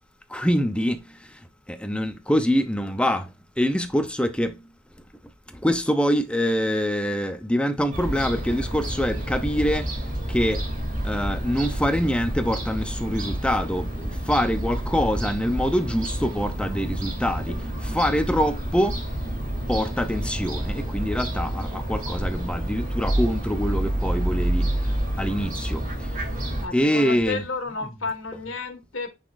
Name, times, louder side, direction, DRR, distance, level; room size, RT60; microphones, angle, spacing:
voice 1, 0.3-1.0 1.7-3.3 3.6-4.6 5.6-9.9 10.3-10.6 11.0-19.0 19.7-24.7 25.2-25.8 26.7-27.4, equal, 5° left, 0.6 m, -25 dB
Fowl / Gull seagull, 7.9-26.7, right 1 dB, 40° right, 2.4 m, -29 dB
voice 2, 26.6-29.1, left 4 dB, 80° left, 1.7 m, -31 dB
9.2 x 4.1 x 2.5 m
head